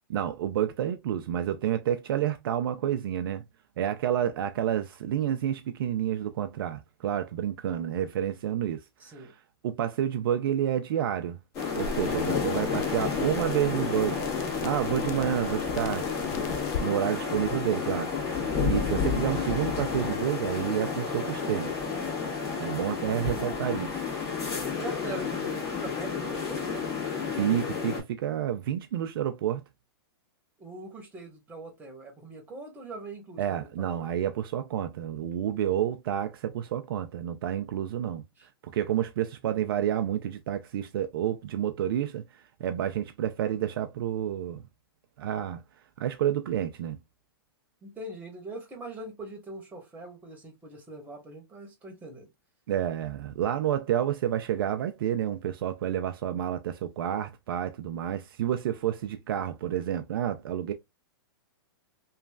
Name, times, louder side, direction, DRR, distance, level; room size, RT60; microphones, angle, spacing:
voice 1, 0.1-3.4 3.8-8.8 9.1-9.3 9.6-11.4 11.8-14.2 14.6-16.1 16.8-18.1 18.6-21.7 22.6-23.9 27.4-29.6 33.4-38.2 38.7-42.2 42.6-44.6 45.2-45.6 46.0-47.0 52.7-60.7, right 10 dB, 70° right, 0.4 m, -29 dB
voice 2, 9.0-9.3 23.3-23.6 24.8-26.6 30.6-34.0 38.4-38.5 47.8-52.3, right 2 dB, 15° right, 1.2 m, -42 dB
sound 1, 11.5-16.9, left 4 dB, 45° left, 0.4 m, -41 dB
sound 2, 11.6-28.0, left 5 dB, 25° left, 1.5 m, -31 dB
3.0 x 2.4 x 2.3 m
hypercardioid pair, 135°, 13 cm